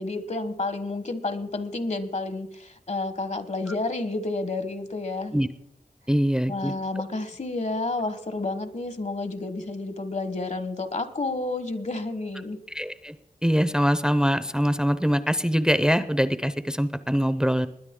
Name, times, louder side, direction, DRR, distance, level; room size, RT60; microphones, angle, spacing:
voice 1, 0.0-5.3 6.5-12.6, left 2 dB, 55° left, 11 dB, 1.3 m, -30 dB
voice 2, 6.1-6.7 12.7-13.1 13.4-17.7, equal, 5° right, 13 dB, 0.6 m, -23 dB
20.5 x 9.8 x 3.7 m, 0.78 s
wide cardioid pair, 50°, 14 cm